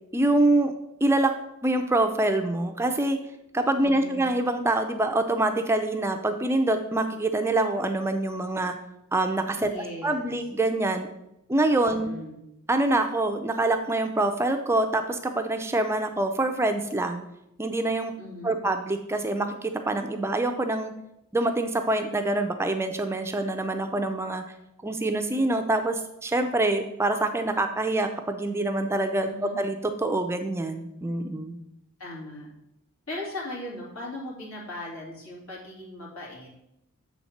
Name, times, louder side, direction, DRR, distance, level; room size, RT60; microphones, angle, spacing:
voice 1, 0.1-0.7 1.0-1.3 1.6-3.2 3.5-8.7 9.1-11.1 11.5-12.1 12.7-17.2 17.6-18.1 18.4-20.9 21.3-24.4 24.8-31.6, right 2 dB, 10° right, 6 dB, 0.4 m, -25 dB
voice 2, 3.8-4.3 9.6-10.3 11.8-12.4 18.2-18.6 29.2-29.6 32.0-32.5 33.1-36.5, left 1 dB, 80° left, -3 dB, 2.6 m, -38 dB
7.0 x 4.2 x 5.8 m, 0.85 s
head